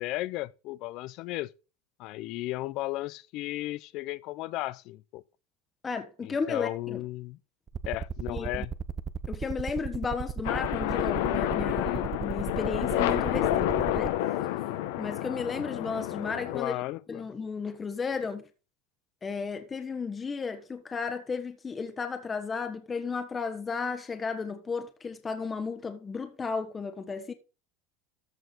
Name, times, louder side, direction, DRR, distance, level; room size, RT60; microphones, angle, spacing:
voice 1, 0.0-1.5 2.0-5.2 6.2-7.4 7.9-8.7 16.5-17.3, left 17 dB, 55° left, 0.5 m, -35 dB
voice 2, 5.8-7.0 8.3-8.5 9.3-14.1 15.0-16.8 17.1-18.4 19.2-27.3, left 5 dB, 20° left, 1.3 m, -34 dB
sound 1, 7.7-14.1, right 7 dB, 25° right, 0.7 m, -34 dB
sound 2, 10.4-16.6, left 13 dB, 75° left, 1.2 m, -29 dB
14.0 x 4.7 x 4.0 m
supercardioid pair, 140°, 0 cm